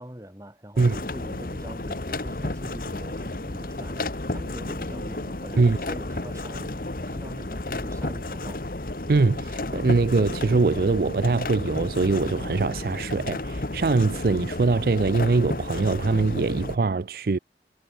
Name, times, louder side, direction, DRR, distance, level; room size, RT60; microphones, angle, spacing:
voice 1, 0.0-8.7, equal, 20° right, 4.1 m, -43 dB
sound 1, 0.8-16.8, left 2 dB, 50° left, 1.3 m, -32 dB
voice 2, 9.1-17.4, right 3 dB, 55° right, 0.5 m, -22 dB
head